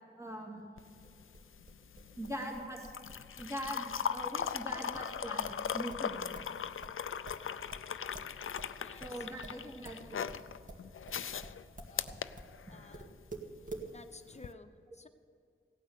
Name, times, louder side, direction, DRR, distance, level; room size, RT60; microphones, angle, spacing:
voice 1, 0.2-0.9 2.2-2.9 3.4-6.4 9.0-10.3, right 1 dB, 15° right, -1 dB, 2.3 m, -42 dB
sound 1, 0.8-13.1 14.3-14.5, left 8 dB, 85° left, 0.4 m, -39 dB
sound 2, 1.0-6.5 6.8-12.5 12.9-13.9, right 2 dB, 40° right, 2.0 m, -48 dB
voice 2, 8.8-9.7 11.9-12.2 12.7-13.2 13.9-15.1, left 2 dB, 35° left, 8 dB, 0.9 m, -55 dB
16.5 x 9.1 x 6.9 m, 2.3 s
wide cardioid pair, 65°, 21 cm